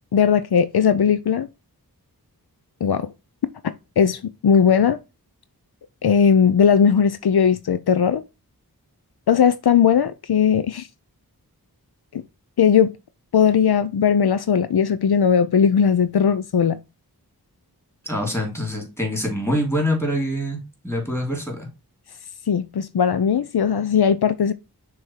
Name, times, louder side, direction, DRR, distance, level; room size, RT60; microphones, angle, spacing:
voice 1, 0.1-1.5 2.8-3.1 4.0-5.0 6.0-8.2 9.3-10.9 12.1-12.2 12.6-12.9 13.3-16.8 22.5-24.5, left 7 dB, 80° left, 0.5 m, -18 dB
voice 2, 18.0-21.7, equal, 5° left, 3.0 m, -25 dB
6.4 x 3.5 x 4.5 m
wide cardioid pair, 45°, 38 cm